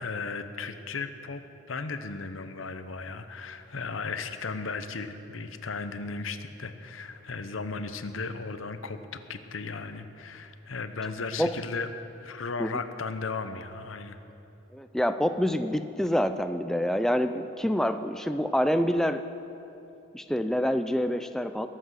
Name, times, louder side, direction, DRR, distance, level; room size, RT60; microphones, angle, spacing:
voice 1, 0.0-1.4 1.7-11.9 12.2-14.2, left 4 dB, 85° left, 9 dB, 0.8 m, -35 dB
voice 2, 14.7-19.2 20.1-21.7, equal, ahead, 9 dB, 0.3 m, -27 dB
21.5 x 7.9 x 6.3 m, 2.9 s
head